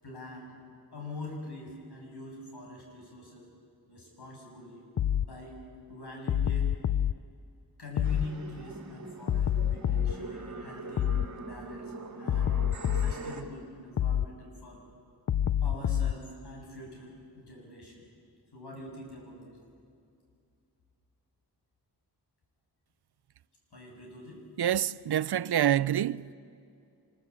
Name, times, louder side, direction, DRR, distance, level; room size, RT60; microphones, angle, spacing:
voice 1, 0.0-0.5 0.9-3.5 3.9-4.8 5.2-6.7 7.8-12.6 12.9-14.8 15.6-18.1 18.5-19.6 23.7-24.5, left 2 dB, 75° left, 6.8 m, -44 dB
sound 1, 5.0-5.3 6.3-7.1 8.0-8.3 9.3-10.2 11.0-11.3 12.3-13.2 14.0-14.3 15.3-16.2, left 10 dB, 50° left, 0.5 m, -27 dB
sound 2, 8.0-13.4, right 2 dB, 45° right, 2.1 m, -42 dB
voice 2, 24.6-26.3, right 11 dB, 75° right, 0.6 m, -27 dB
25.0 x 21.5 x 8.6 m
wide cardioid pair, 125°, 39 cm